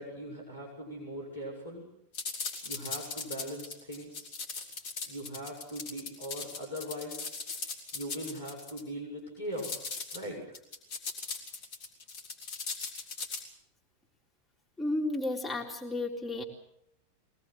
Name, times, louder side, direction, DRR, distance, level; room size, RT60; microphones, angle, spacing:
voice 1, 0.0-1.8 2.6-4.3 5.1-7.2 7.9-10.6, equal, 80° left, -2 dB, 6.1 m, -40 dB
sound 1, 2.1-8.8 9.6-10.2 10.5-13.4, left 4 dB, 50° left, 5.2 m, -39 dB
voice 2, 14.8-16.4, left 2 dB, 5° left, -2 dB, 3.8 m, -32 dB
23.0 x 19.5 x 7.8 m, 0.80 s
figure-of-eight pair, 90°, 0 cm